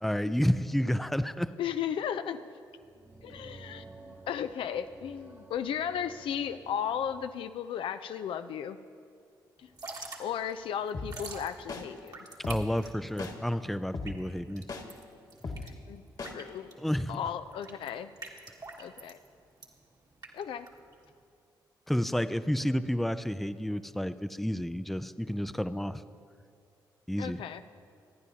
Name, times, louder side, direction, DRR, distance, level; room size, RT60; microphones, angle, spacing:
voice 1, 0.0-1.5 12.5-14.7 16.8-17.2 21.9-26.0 27.1-27.4, equal, ahead, 12 dB, 0.5 m, -30 dB
voice 2, 1.6-2.4 3.2-8.8 10.2-12.2 15.9-16.0 16.3-16.7 17.1-18.1 18.8-19.2 20.3-20.7 27.2-27.6, left 9 dB, 75° left, 10 dB, 0.4 m, -35 dB
sound 1, 2.7-7.3, right 3 dB, 25° right, 1.1 m, -52 dB
Drip / Trickle dribble, 9.6-21.2, right 3 dB, 45° right, 1.7 m, -47 dB
sound 2, 10.9-11.1 11.7-11.8 12.4-12.6 13.2-13.3 13.9-14.1 14.7-14.8 15.4-15.6 16.2-16.3, left 3 dB, 50° left, 1.6 m, -36 dB
26.5 x 9.5 x 2.8 m, 2.4 s
supercardioid pair, 50°, 9 cm